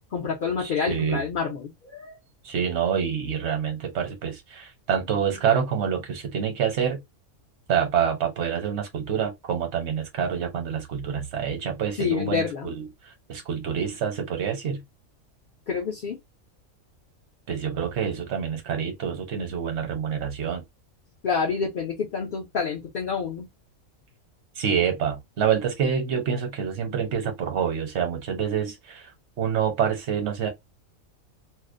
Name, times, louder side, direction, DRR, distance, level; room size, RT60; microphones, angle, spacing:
voice 1, 0.0-2.2 12.0-12.7 15.7-16.2 21.2-23.5, left 5 dB, 55° left, 0.6 m, -28 dB
voice 2, 0.6-1.2 2.4-7.0 7.7-14.8 17.5-20.6 24.6-29.1 29.4-30.5, right 7 dB, 60° right, 1.0 m, -27 dB
2.5 x 2.0 x 2.4 m
omnidirectional pair, 1.4 m